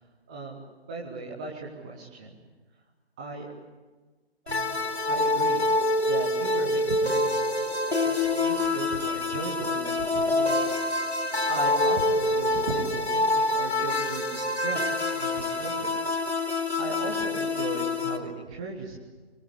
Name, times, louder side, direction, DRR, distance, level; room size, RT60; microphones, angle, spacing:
voice 1, 0.3-0.6 0.9-2.4 3.2-3.5 4.4-5.6 6.0-7.6 8.0-10.7 11.5-16.1 16.4-19.0, right 4 dB, 5° right, -1 dB, 0.7 m, -37 dB
sound 1, 4.5-18.2, left 2 dB, 85° left, 4.0 m, -26 dB
26.5 x 23.5 x 8.0 m, 1.3 s
figure-of-eight pair, 150°, 32 cm